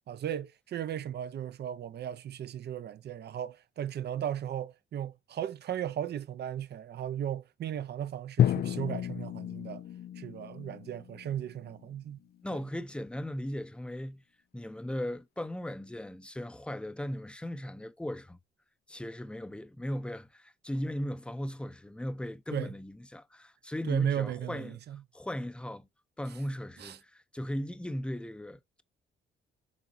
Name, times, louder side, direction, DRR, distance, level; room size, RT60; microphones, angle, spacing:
voice 1, 0.1-9.8 10.2-12.2 22.5-22.7 23.9-25.0 26.8-27.0, right 10 dB, 55° right, 0.7 m, -36 dB
Drum, 8.4-12.4, left 11 dB, 55° left, 0.4 m, -32 dB
voice 2, 12.4-14.2 14.5-18.4 18.9-24.8 25.1-25.9 26.2-28.8, equal, 5° left, 0.7 m, -37 dB
7.4 x 3.9 x 4.1 m
cardioid pair, 90°, 20 cm